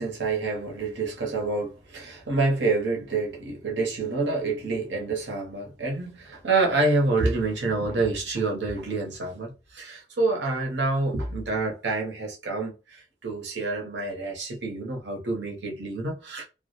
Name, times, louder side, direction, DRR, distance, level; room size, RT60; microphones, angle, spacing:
voice 1, 0.0-16.4, right 3 dB, 70° right, 0.7 m, -27 dB
2.2 x 2.0 x 2.8 m
head